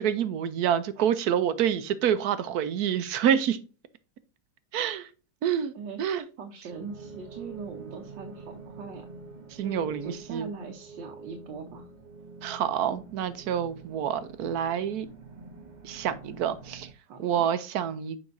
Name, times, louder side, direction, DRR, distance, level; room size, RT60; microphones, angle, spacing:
voice 1, 0.0-3.6 4.7-5.1 5.4-5.7 6.0-6.2 9.6-10.5 12.4-15.1 15.8-16.9 17.2-18.2, right 9 dB, 70° right, 13 dB, 1.0 m, -27 dB
voice 2, 6.4-9.1 9.6-11.9 17.1-17.4, right 5 dB, 85° right, 2 dB, 1.6 m, -41 dB
sound 1, 6.7-16.9, right 3 dB, 45° right, 0.6 m, -46 dB
7.7 x 5.4 x 2.6 m, 0.34 s
omnidirectional pair, 1.9 m